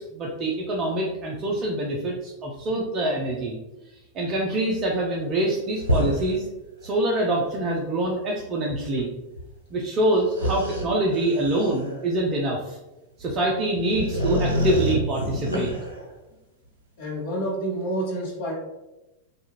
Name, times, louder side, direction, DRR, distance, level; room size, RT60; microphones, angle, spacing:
voice 1, 0.0-3.6 4.1-6.5 6.8-9.1 9.7-12.8 13.2-15.7, right 1 dB, 30° right, -2 dB, 0.4 m, -25 dB
sound 1, 5.8-6.3 6.9-7.0 9.4-9.5 10.3-12.2 13.3-13.4 13.7-16.1, equal, 80° right, 0.6 m, -27 dB
voice 2, 17.0-18.5, right 1 dB, 50° left, -2 dB, 0.9 m, -28 dB
2.6 x 2.4 x 2.9 m, 1.0 s
figure-of-eight pair, 90°, 0 cm